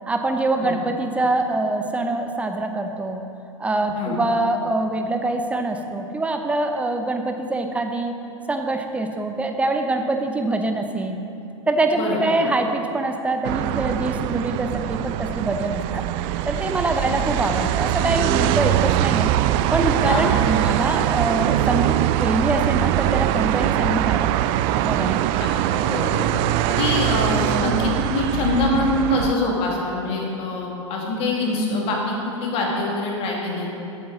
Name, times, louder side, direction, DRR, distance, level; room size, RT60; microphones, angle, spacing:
voice 1, 0.1-3.2 3.6-8.1 8.5-11.2 11.7-16.0 16.5-19.3 19.7-24.3 24.8-25.4, right 2 dB, 10° right, 5 dB, 0.8 m, -24 dB
sound 1, 13.4-29.3, right 13 dB, 35° right, 0.4 m, -22 dB
voice 2, 25.4-26.3 26.7-33.7, left 2 dB, 35° left, -1 dB, 2.3 m, -24 dB
14.5 x 8.7 x 4.0 m, 2.9 s
figure-of-eight pair, 95°, 16 cm